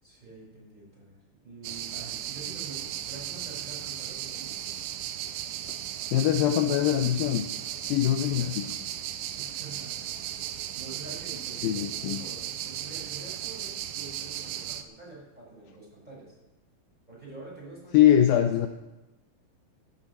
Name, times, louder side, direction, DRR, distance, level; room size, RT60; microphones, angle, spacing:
voice 1, 0.0-4.8 8.2-8.5 9.3-10.4 10.7-16.3 17.1-18.7, right 2 dB, 10° right, -6 dB, 6.3 m, -46 dB
sound 1, 1.6-14.8, right 11 dB, 90° right, 2.8 m, -36 dB
voice 2, 6.1-7.5 7.8-8.7 11.6-12.2 17.9-18.7, left 11 dB, 85° left, 7 dB, 2.0 m, -23 dB
13.5 x 8.1 x 8.2 m, 1.0 s
omnidirectional pair, 4.8 m